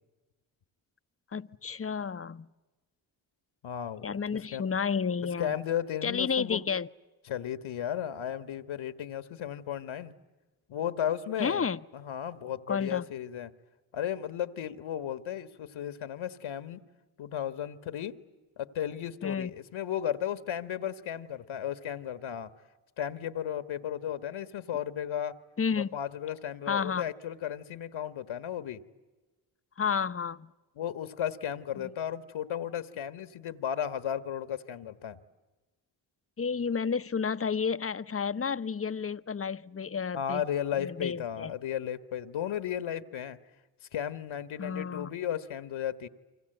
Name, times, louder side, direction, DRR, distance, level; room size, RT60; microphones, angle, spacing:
voice 1, 1.3-2.5 4.0-5.5 6.0-6.9 11.4-11.8 12.7-13.0 19.2-19.5 25.6-25.9 26.7-27.0 29.8-30.5 36.4-40.4 40.8-41.5 44.6-45.1, left 6 dB, 25° left, 0.9 m, -31 dB
voice 2, 3.6-4.7 5.4-6.6 7.2-10.1 10.7-11.7 11.9-13.5 13.9-16.8 17.2-18.2 18.6-22.5 23.0-25.4 25.8-28.8 30.7-35.2 40.1-43.4 43.9-46.1, left 10 dB, 70° left, 1.6 m, -34 dB
29.5 x 25.0 x 8.0 m
supercardioid pair, 45°, 50 cm